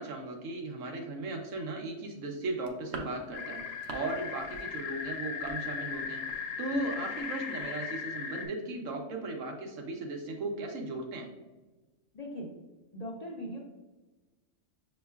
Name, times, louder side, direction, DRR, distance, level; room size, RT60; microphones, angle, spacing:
voice 1, 0.0-6.2 6.6-11.3, right 2 dB, 90° right, 2 dB, 1.2 m, -37 dB
sound 1, 2.5-4.1 4.4-4.7 4.9-6.4 6.7-6.9 7.2-7.3 7.6-7.7, right 3 dB, 65° right, 0.8 m, -45 dB
sound 2, 3.3-8.5, left 6 dB, 90° left, 1.0 m, -38 dB
voice 2, 12.1-12.5 12.9-13.6, equal, 50° left, -2 dB, 0.5 m, -39 dB
6.2 x 2.9 x 2.3 m, 1.2 s
omnidirectional pair, 1.3 m